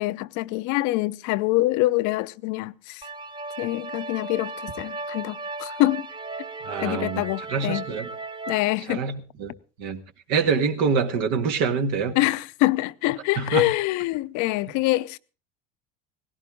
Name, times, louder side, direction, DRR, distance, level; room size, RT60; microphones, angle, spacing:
voice 1, 0.0-3.1 3.6-6.1 6.8-7.9 8.5-9.0 12.1-15.2, left 19 dB, 60° left, 0.7 m, -25 dB
sound 1, 3.0-8.7, right 3 dB, 15° right, 0.8 m, -36 dB
voice 2, 6.6-7.2 7.5-8.1 8.9-9.1 9.4-9.5 9.8-10.0 10.3-12.2 13.4-13.7, right 5 dB, 70° right, 2.0 m, -25 dB
18.0 x 16.5 x 3.8 m
hypercardioid pair, 90°, 34 cm